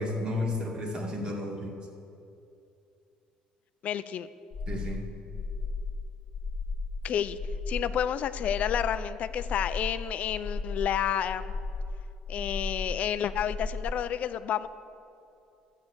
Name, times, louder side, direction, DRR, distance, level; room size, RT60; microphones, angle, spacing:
voice 1, 0.0-1.7 4.7-5.0, left 1 dB, 30° right, 1 dB, 2.1 m, -32 dB
voice 2, 3.8-4.3 7.0-7.4 7.7-11.6 12.3-14.7, left 9 dB, 50° left, 13 dB, 0.5 m, -30 dB
sound 1, 4.5-13.9, left 3 dB, 35° left, 1.7 m, -35 dB
13.0 x 8.3 x 8.0 m, 2.7 s
cardioid pair, 125°, 3 cm